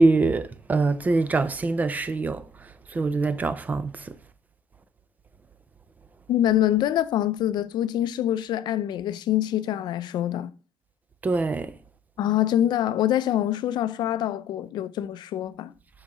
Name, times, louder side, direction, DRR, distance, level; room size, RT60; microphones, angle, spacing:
voice 1, 0.0-4.1 11.2-11.7, right 3 dB, 20° right, 0.4 m, -24 dB
voice 2, 6.3-10.5 12.2-15.7, left 12 dB, 75° left, 0.5 m, -25 dB
12.5 x 4.7 x 3.0 m
cardioid pair, 165°, 8 cm